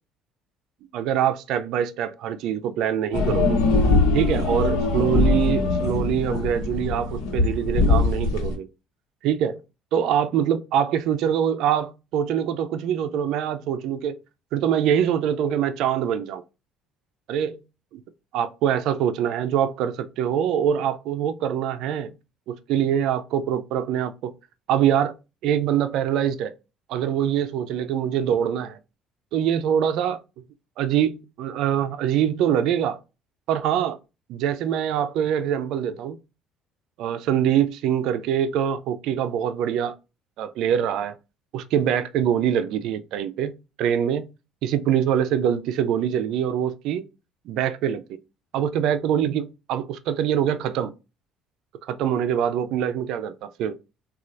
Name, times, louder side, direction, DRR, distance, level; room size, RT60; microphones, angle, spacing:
voice 1, 0.9-3.6 4.1-8.7 9.2-9.6 9.9-14.2 14.5-16.4 17.3-17.6 17.9-18.0 18.3-22.1 22.5-24.3 24.7-25.1 25.4-26.5 26.9-28.8 29.3-30.2 30.8-33.0 33.5-34.0 34.3-36.2 37.0-39.9 40.4-41.2 41.5-44.3 44.6-47.0 47.5-48.2 48.5-50.9 51.9-53.8, right 9 dB, 70° right, 0.4 m, -24 dB
sound 1, 3.1-8.5, left 3 dB, 85° left, 1.0 m, -22 dB
4.2 x 2.3 x 2.5 m
cardioid pair, 100°, 0 cm